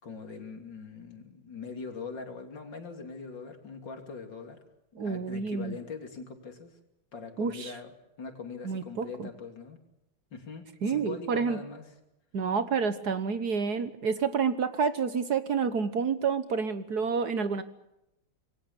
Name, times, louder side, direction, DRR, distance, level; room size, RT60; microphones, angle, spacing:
voice 1, 0.0-4.6 4.9-6.7 7.1-9.8 10.3-11.8, left 4 dB, 65° left, 4 dB, 3.5 m, -42 dB
voice 2, 4.9-5.8 7.4-7.7 8.6-9.3 10.8-11.6 12.3-17.6, right 5 dB, 55° right, 11 dB, 1.6 m, -29 dB
26.5 x 22.0 x 7.1 m, 0.87 s
omnidirectional pair, 2.2 m